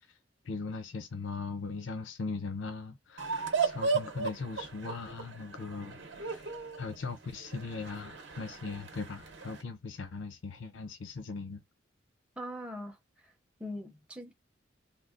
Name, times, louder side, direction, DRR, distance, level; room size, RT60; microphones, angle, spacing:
voice 1, 0.5-6.5 6.8-11.6, left 4 dB, 85° left, 0.5 m, -39 dB
sound 1, 3.2-9.6, right 4 dB, 70° right, 0.8 m, -35 dB
voice 2, 12.4-13.0 13.2-13.3 13.6-14.3, equal, 5° right, 0.5 m, -41 dB
3.6 x 2.3 x 2.4 m
head